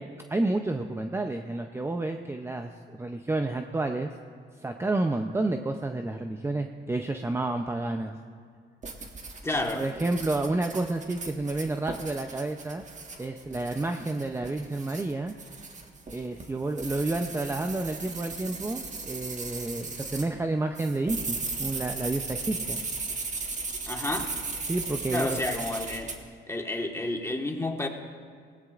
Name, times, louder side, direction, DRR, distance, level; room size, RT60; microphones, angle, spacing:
voice 1, 0.0-4.1 4.6-8.1 9.7-12.8 13.2-15.3 16.1-22.8 24.7-25.4, right 2 dB, 10° right, 5 dB, 0.6 m, -30 dB
sound 1, 8.8-20.3 20.7-26.2, right 4 dB, 35° right, 1.5 m, -37 dB
voice 2, 9.4-9.8 23.8-24.4 25.1-26.2 26.5-27.9, left 2 dB, 15° left, 2 dB, 1.5 m, -30 dB
20.5 x 17.5 x 2.5 m, 2.2 s
cardioid pair, 90°, 20 cm